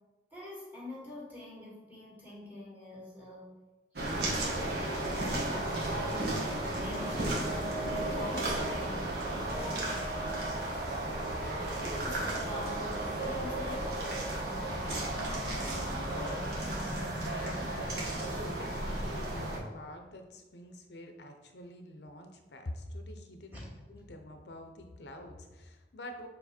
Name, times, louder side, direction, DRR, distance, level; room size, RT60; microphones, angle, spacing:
voice 1, 0.3-3.5 3.9-9.0 9.5-10.0 11.7-14.0 23.5-23.7, equal, 10° right, -6 dB, 1.8 m, -44 dB
sound 1, 4.0-19.6, right 1 dB, 65° right, 1.4 m, -34 dB
sound 2, 11.9-19.6, left 1 dB, 5° left, 1.9 m, -50 dB
voice 2, 14.7-16.9 17.2-26.3, left 1 dB, 70° left, 5 dB, 0.7 m, -47 dB
7.1 x 3.2 x 4.3 m, 1.2 s
head